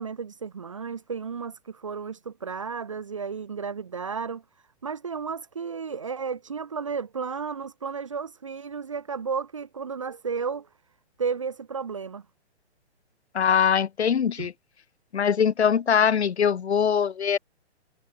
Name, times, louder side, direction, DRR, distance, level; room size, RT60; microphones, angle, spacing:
voice 1, 0.0-4.4 4.8-10.7 11.2-12.3 14.4-14.5, right 5 dB, 30° right, 0.7 m, -33 dB
voice 2, 13.3-14.5 15.1-17.4, left 7 dB, 70° left, 1.7 m, -22 dB
hypercardioid pair, 180°, 34 cm